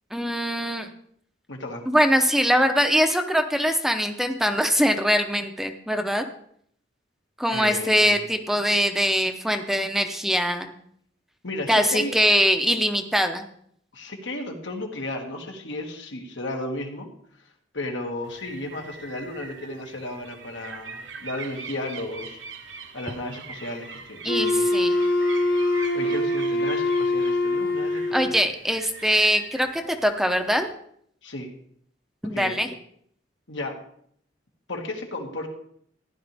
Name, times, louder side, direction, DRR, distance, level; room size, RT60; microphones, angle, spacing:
voice 1, 0.1-0.9 1.9-6.2 7.4-10.7 11.7-13.4 24.2-25.0 28.1-30.7 32.2-32.7, equal, ahead, 6 dB, 0.7 m, -22 dB
voice 2, 1.5-1.9 7.5-8.2 11.4-12.2 13.9-17.1 17.7-24.7 25.7-28.3 31.2-31.5 32.3-32.6 33.5-33.8 34.7-35.5, left 2 dB, 80° left, 1 dB, 2.1 m, -34 dB
sound 1, 18.2-30.7, right 5 dB, 80° right, 1.3 m, -42 dB
Wind instrument woodwind instrument, 24.3-28.4, left 2 dB, 55° left, 1.2 m, -23 dB
15.0 x 11.0 x 3.5 m, 0.65 s
head